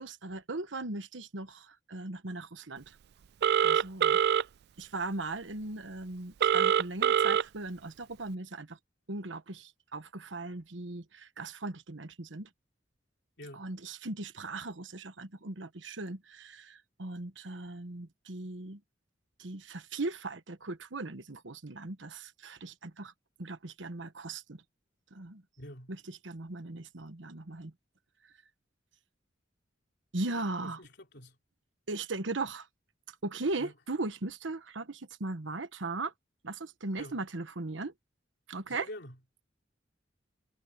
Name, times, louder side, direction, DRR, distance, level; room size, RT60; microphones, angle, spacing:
voice 1, 0.0-3.0 3.6-4.2 4.8-8.8 9.1-12.5 13.5-18.8 19.4-23.1 23.4-24.6 25.1-25.4 25.9-27.7 30.1-30.8 31.9-32.7 33.2-36.1 36.4-37.9 38.5-38.9, right 2 dB, 90° right, 1.3 m, -38 dB
Telephone, 3.4-4.4 6.4-7.4, right 8 dB, 60° right, 0.3 m, -24 dB
voice 2, 25.6-25.9 30.6-31.4 33.6-33.7 37.0-37.2 38.7-39.2, left 1 dB, 65° left, 3.5 m, -46 dB
head